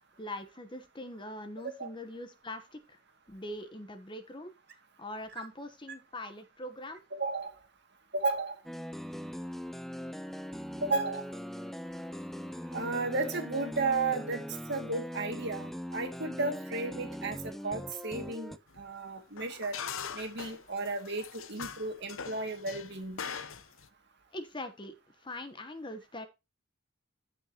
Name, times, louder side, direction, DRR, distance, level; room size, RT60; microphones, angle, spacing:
voice 1, 0.2-3.0 3.3-4.5 5.0-7.0 24.3-26.3, left 1 dB, 25° left, 9 dB, 1.0 m, -42 dB
voice 2, 7.1-7.6 8.1-8.6 10.8-11.3 12.7-14.4 14.7-17.4 17.6-19.8 20.1-23.2, right 3 dB, 55° right, 5 dB, 2.3 m, -33 dB
sound 1, 8.7-18.6, equal, ahead, 0.4 m, -41 dB
sound 2, 18.7-18.8 19.4-23.9, left 7 dB, 80° left, 0.8 m, -42 dB
15.5 x 5.4 x 2.9 m, 0.25 s
head